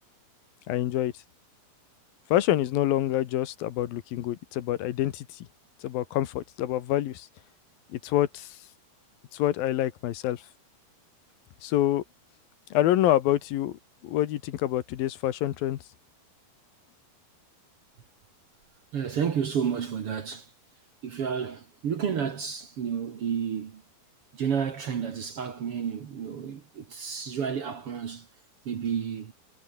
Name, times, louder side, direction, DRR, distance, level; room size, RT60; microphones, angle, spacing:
voice 1, 0.7-1.1 2.3-5.5 5.8-7.3 7.9-8.6 9.3-10.5 11.6-12.0 12.7-15.8, left 13 dB, 80° left, 3.0 m, -27 dB
voice 2, 18.9-20.5 21.0-23.8 24.3-28.3 28.7-29.3, right 7 dB, 50° right, 2.0 m, -31 dB
omnidirectional pair, 4.2 m